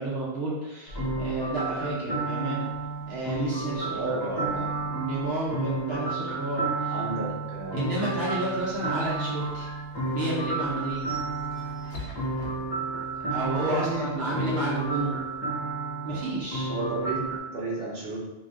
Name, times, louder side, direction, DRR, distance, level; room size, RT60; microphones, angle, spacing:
voice 1, 0.0-2.7 3.1-6.9 7.7-9.7 10.1-11.0 13.3-15.2 16.0-16.7, right 2 dB, 75° right, -5 dB, 0.9 m, -31 dB
sound 1, 0.9-17.4, right 3 dB, 25° left, 0.9 m, -32 dB
voice 2, 3.9-4.9 6.9-8.0 13.6-14.6 16.7-18.2, right 2 dB, 50° right, -5 dB, 0.9 m, -33 dB
sound 2, 8.2-13.2, left 3 dB, 55° left, 0.7 m, -46 dB
2.5 x 2.5 x 3.3 m, 1.0 s
omnidirectional pair, 1.1 m